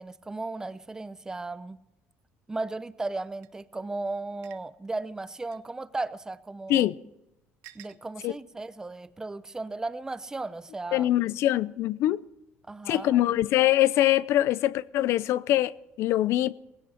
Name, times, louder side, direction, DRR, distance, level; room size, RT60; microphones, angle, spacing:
voice 1, 0.0-1.8 2.5-6.9 7.7-11.1 12.7-13.2, right 2 dB, 15° right, 0.7 m, -35 dB
sound 1, 3.4-3.5 4.4-4.6 5.5-5.6 6.7-6.8 7.6-8.0, right 15 dB, 85° right, 0.9 m, -50 dB
voice 2, 10.9-12.2 12.9-16.5, left 14 dB, 65° left, 0.6 m, -23 dB
18.0 x 16.5 x 4.4 m
cardioid pair, 125°, 5 cm